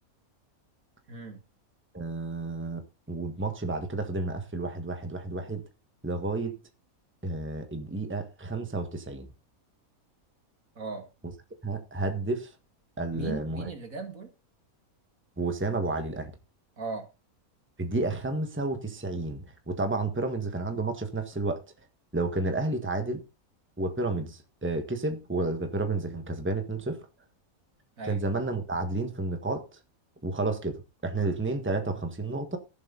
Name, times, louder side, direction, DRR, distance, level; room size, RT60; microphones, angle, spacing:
voice 1, 1.1-1.4 10.8-11.1 13.1-14.3 16.8-17.1 28.0-28.2, right 3 dB, 65° right, 2.5 m, -37 dB
voice 2, 1.9-5.6 6.0-6.6 7.2-9.3 11.6-12.5 13.0-13.7 15.4-16.3 17.8-21.6 22.1-23.2 23.8-27.1 28.0-29.6 30.2-32.6, right 2 dB, 10° right, 1.5 m, -31 dB
15.5 x 7.5 x 4.0 m
omnidirectional pair, 1.5 m